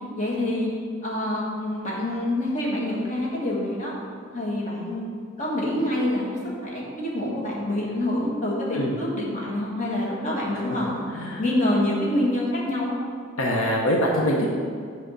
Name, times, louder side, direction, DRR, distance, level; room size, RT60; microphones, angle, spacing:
voice 1, 0.2-0.7 1.0-3.9 4.3-5.1 5.4-6.3 6.6-11.0 11.4-13.0, left 1 dB, 35° left, -4 dB, 1.5 m, -26 dB
voice 2, 13.4-14.5, equal, 75° left, -1 dB, 0.9 m, -23 dB
7.9 x 3.5 x 6.2 m, 2.1 s
head